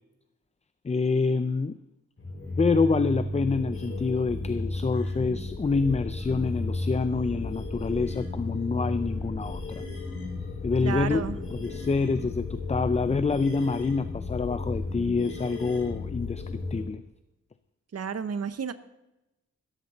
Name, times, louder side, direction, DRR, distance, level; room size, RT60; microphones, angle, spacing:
voice 1, 0.8-1.8 2.6-9.8 10.6-17.0, left 4 dB, 25° left, 13 dB, 0.4 m, -27 dB
sound 1, 2.2-16.8, left 2 dB, 45° left, 4.4 m, -33 dB
voice 2, 10.8-11.3 17.9-18.7, right 6 dB, 55° right, 13 dB, 0.8 m, -31 dB
16.0 x 13.5 x 4.0 m, 0.96 s
wide cardioid pair, 150°, 29 cm